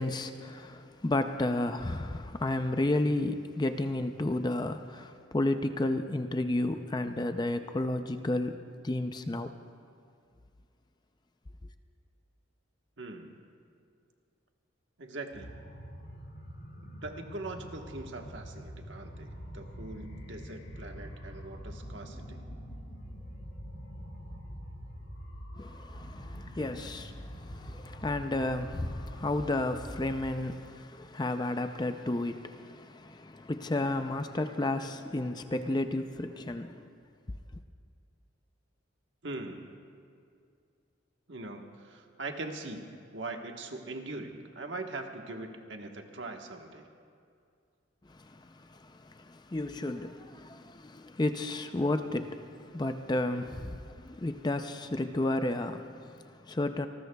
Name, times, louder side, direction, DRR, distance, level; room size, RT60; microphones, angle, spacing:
voice 1, 0.0-9.5 25.6-36.9 48.1-56.9, left 2 dB, 20° left, 0.4 m, -32 dB
voice 2, 13.0-13.3 15.0-15.5 16.8-22.4 39.2-39.6 41.3-42.8 43.1-46.9, right 2 dB, 65° right, 1.3 m, -41 dB
sound 1, 15.3-30.3, equal, 70° left, 5.0 m, -45 dB
27.0 x 19.5 x 2.3 m
head